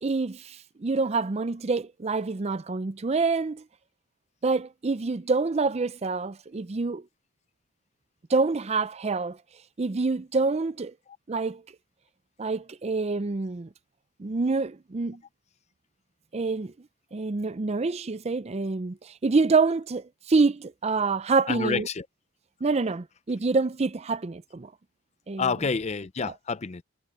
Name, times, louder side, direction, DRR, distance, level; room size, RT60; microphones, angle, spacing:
voice 1, 0.0-3.6 4.4-7.0 8.3-9.4 9.8-10.9 11.3-11.6 12.4-13.7 14.2-15.2 16.3-16.7 17.1-21.9 22.6-24.7 25.3-25.5 26.2-26.3, right 4 dB, 30° right, 0.5 m, -26 dB
voice 2, 21.5-22.1 25.4-26.8, left 5 dB, 30° left, 0.5 m, -28 dB
head